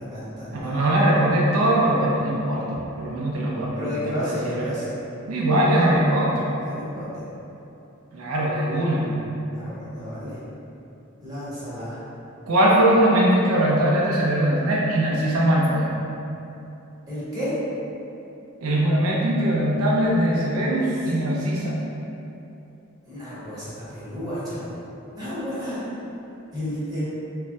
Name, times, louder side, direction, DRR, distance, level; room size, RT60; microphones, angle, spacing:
voice 1, 0.0-0.8 3.7-4.9 6.6-7.3 9.5-10.4 11.2-12.0 17.1-17.5 23.0-24.8 25.2-25.8 26.5-27.0, left 1 dB, 20° right, -12 dB, 0.9 m, -32 dB
voice 2, 0.5-4.8 5.3-6.5 8.1-9.1 12.5-15.9 18.6-21.8, right 1 dB, 75° right, -4 dB, 0.4 m, -21 dB
3.2 x 2.1 x 2.6 m, 2.9 s
head